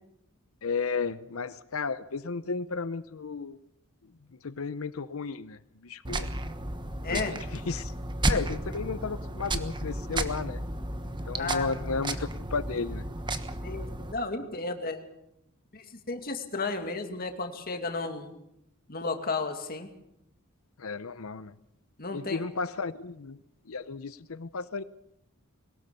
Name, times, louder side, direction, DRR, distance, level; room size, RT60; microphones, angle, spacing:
voice 1, 0.6-3.6 4.4-6.3 7.1-7.9 8.3-10.6 11.3-13.0 20.8-21.6 22.1-23.4 23.7-24.8, left 4 dB, 75° left, 14 dB, 0.7 m, -33 dB
sound 1, 6.0-14.1, right 1 dB, 20° right, 1.2 m, -33 dB
voice 2, 11.4-11.7 13.6-15.0 15.7-18.3 18.9-19.9 22.0-22.4, left 3 dB, 45° left, 6 dB, 2.4 m, -33 dB
22.0 x 19.0 x 7.0 m, 0.82 s
head